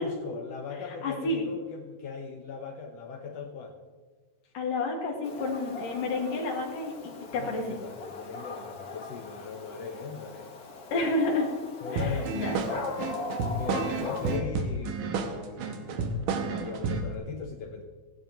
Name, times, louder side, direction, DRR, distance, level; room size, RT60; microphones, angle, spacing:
voice 1, 0.0-3.8 7.3-10.5 11.8-12.4 12.6-12.7 13.4-17.8, left 6 dB, 70° left, 4 dB, 1.7 m, -39 dB
voice 2, 1.0-1.5 4.6-7.8 10.9-11.5 11.9-12.7, left 2 dB, 85° left, -1 dB, 3.5 m, -30 dB
Dog, 5.2-14.4, left 3 dB, 50° left, 1.2 m, -39 dB
sound 1, 12.0-17.1, right 4 dB, 90° right, 2.7 m, -31 dB
17.5 x 16.0 x 3.0 m, 1.4 s
omnidirectional pair, 3.6 m